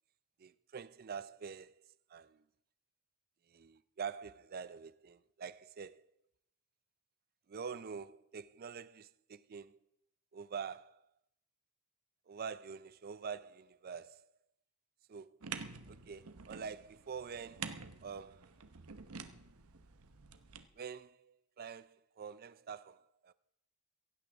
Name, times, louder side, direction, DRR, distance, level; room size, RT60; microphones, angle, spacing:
voice 1, 0.4-1.8 2.1-2.4 3.5-6.0 7.5-9.8 10.3-11.1 12.3-14.3 15.1-15.4 15.9-18.9 20.7-23.3, right 6 dB, 45° right, 0.4 m, -46 dB
sound 1, 15.4-20.7, right 5 dB, 80° right, 0.9 m, -48 dB
17.0 x 16.0 x 3.5 m
head